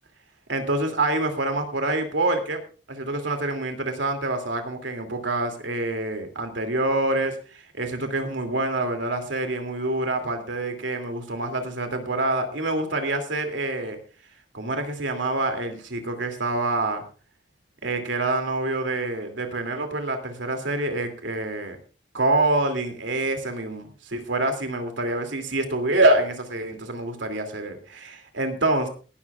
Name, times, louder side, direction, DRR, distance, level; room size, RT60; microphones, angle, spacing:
voice 1, 0.5-2.6 2.9-14.0 14.5-17.0 17.8-21.8 22.1-28.9, right 2 dB, 85° right, 5 dB, 2.6 m, -26 dB
19.0 x 12.5 x 2.4 m, 0.37 s
head